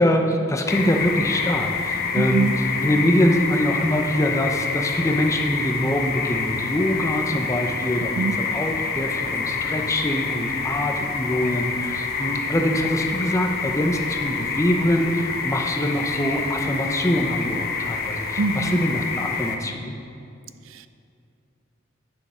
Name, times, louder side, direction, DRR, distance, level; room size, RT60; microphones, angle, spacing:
voice 1, 0.0-2.5 2.8-20.0, equal, 15° left, 3 dB, 0.8 m, -24 dB
sound 1, 0.7-19.6, left 5 dB, 50° left, 0.9 m, -27 dB
voice 2, 2.1-2.6 8.2-8.4 18.4-18.8 20.6-20.9, right 3 dB, 85° right, 12 dB, 0.4 m, -24 dB
10.0 x 7.6 x 5.6 m, 2.4 s
head